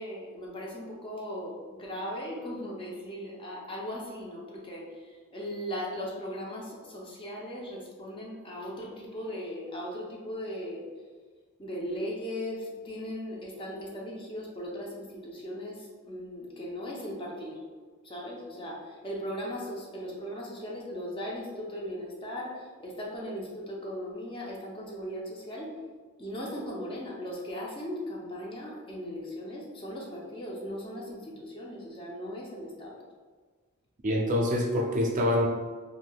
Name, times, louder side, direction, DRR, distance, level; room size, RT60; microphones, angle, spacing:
voice 1, 0.0-10.9 11.6-17.6 18.0-25.7 26.2-33.0, equal, 25° left, -3 dB, 0.6 m, -38 dB
voice 2, 34.0-35.5, left 1 dB, 40° right, -1 dB, 0.4 m, -25 dB
3.3 x 2.6 x 2.2 m, 1.5 s
head